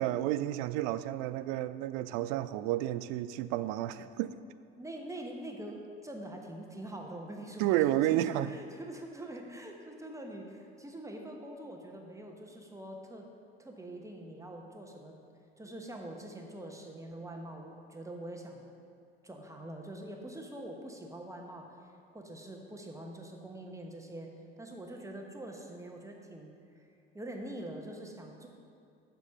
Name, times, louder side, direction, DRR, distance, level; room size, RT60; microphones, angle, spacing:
voice 1, 0.0-4.4 7.6-8.5, right 14 dB, 55° right, 14 dB, 0.4 m, -31 dB
voice 2, 4.7-13.3 13.6-15.1 15.6-18.7 19.2-21.8 22.1-24.3 24.6-26.9 27.1-28.5, right 1 dB, 10° right, 1 dB, 1.1 m, -44 dB
7.4 x 7.0 x 5.5 m, 2.4 s
figure-of-eight pair, 60°, 30 cm